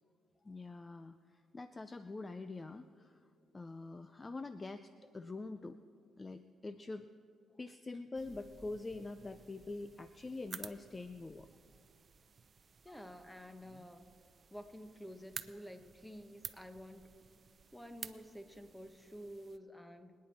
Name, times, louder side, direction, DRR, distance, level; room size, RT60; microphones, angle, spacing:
voice 1, 0.4-3.3 3.5-5.8 6.2-7.1 7.6-11.5, left 3 dB, 25° left, 11 dB, 0.4 m, -45 dB
sound 1, 8.1-19.6, right 5 dB, 40° right, 0.6 m, -53 dB
voice 2, 12.8-14.1 14.5-17.1 17.7-20.1, equal, 5° left, 8 dB, 1.1 m, -50 dB
24.0 x 9.5 x 4.3 m, 2.4 s
cardioid pair, 90°, 0 cm